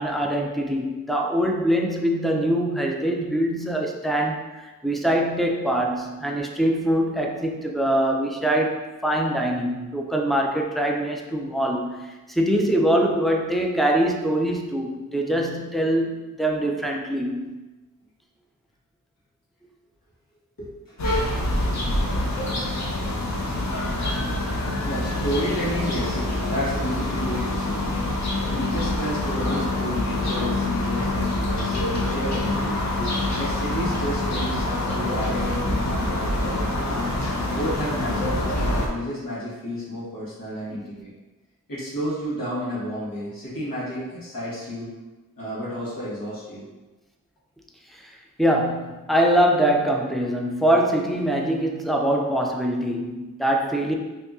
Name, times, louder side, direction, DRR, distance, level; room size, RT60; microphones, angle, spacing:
voice 1, 0.0-17.5 33.0-33.1 40.7-40.9 47.9-48.1 48.4-53.9, right 1 dB, ahead, 1 dB, 0.4 m, -23 dB
voice 2, 20.6-21.4 23.7-27.9 28.4-32.8 33.4-36.9 37.5-38.3 38.7-41.1 41.7-44.9 45.4-46.6, equal, 90° left, -9 dB, 1.3 m, -31 dB
sound 1, 21.0-38.9, left 1 dB, 55° left, 0.6 m, -26 dB
2.8 x 2.5 x 3.5 m, 1.1 s
wide cardioid pair, 75°, 33 cm